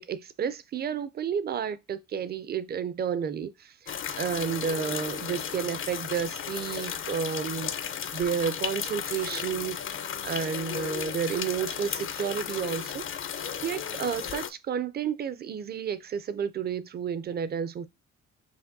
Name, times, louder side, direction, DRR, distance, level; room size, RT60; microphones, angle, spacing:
voice 1, 0.0-9.8 10.2-13.0 13.4-17.9, right 7 dB, 35° right, 0.4 m, -31 dB
sound 1, 3.9-14.5, left 8 dB, 45° left, 0.5 m, -34 dB
5.8 x 2.2 x 2.6 m
cardioid pair, 90°, 30 cm